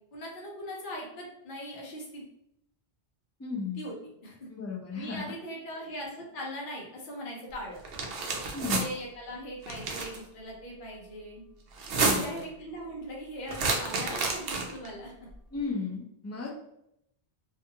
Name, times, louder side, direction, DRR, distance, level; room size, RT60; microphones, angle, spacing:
voice 1, 0.1-2.3 3.8-3.9 4.2-4.5 4.9-7.8 8.6-11.4 12.0-15.1, equal, 55° left, -2 dB, 0.9 m, -40 dB
voice 2, 3.4-3.8 4.5-5.2 8.5-8.8 12.0-12.4 15.5-16.5, left 4 dB, 25° left, -2 dB, 0.4 m, -35 dB
sound 1, 7.8-8.9 9.6-10.2 11.7-12.4 13.5-14.9, right 3 dB, 70° right, 0.8 m, -29 dB
2.4 x 2.4 x 2.7 m, 0.79 s
omnidirectional pair, 1.0 m